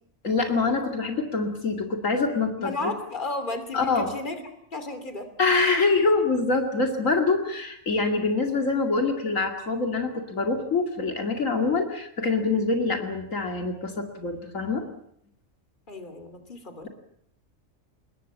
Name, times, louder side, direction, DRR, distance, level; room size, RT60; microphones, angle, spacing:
voice 1, 0.2-2.9 3.7-4.1 5.4-14.9, left 3 dB, 70° left, 4 dB, 2.7 m, -25 dB
voice 2, 2.6-4.4 4.7-5.3 15.9-16.9, left 3 dB, 35° left, 8 dB, 3.1 m, -33 dB
26.0 x 21.0 x 7.4 m, 0.72 s
omnidirectional pair, 1.4 m